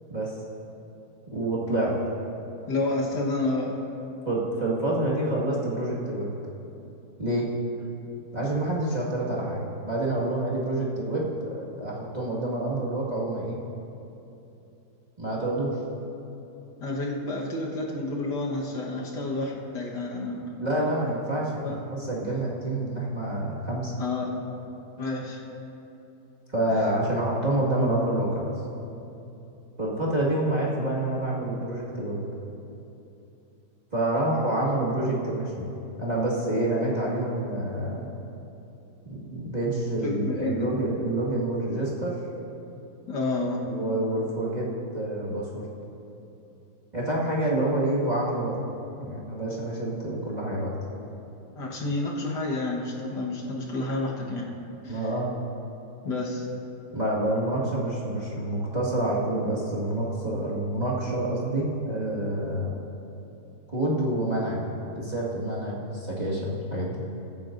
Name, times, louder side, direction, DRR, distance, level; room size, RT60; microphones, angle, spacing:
voice 1, 1.3-1.9 4.3-6.3 7.2-7.5 8.3-13.6 15.2-15.8 20.6-23.9 26.5-28.5 29.8-32.2 33.9-35.7 36.0-38.1 39.0-42.2 43.7-44.7 44.9-45.6 46.9-48.6 49.0-50.7 54.9-55.3 56.9-62.7 63.7-64.6 64.9-67.0, right 1 dB, 25° right, -7 dB, 1.9 m, -27 dB
voice 2, 2.7-3.8 16.8-20.6 21.5-21.8 24.0-24.4 25.0-25.4 26.7-26.8 40.0-40.7 43.1-43.7 51.6-54.5 54.8-55.0 56.0-56.5, left 2 dB, 70° left, -2 dB, 2.0 m, -30 dB
22.0 x 9.1 x 2.6 m, 2.9 s
omnidirectional pair, 1.9 m